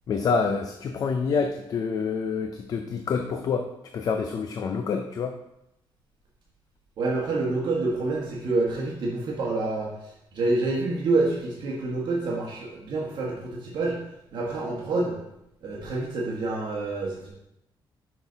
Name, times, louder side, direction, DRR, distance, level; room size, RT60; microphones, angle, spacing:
voice 1, 0.1-3.7 3.9-5.4, left 5 dB, 45° left, 6 dB, 0.5 m, -27 dB
voice 2, 7.0-14.0 14.3-15.2 15.6-17.3, right 2 dB, 60° right, -3 dB, 1.4 m, -27 dB
6.0 x 5.8 x 4.0 m, 0.83 s
cardioid pair, 160°, 9 cm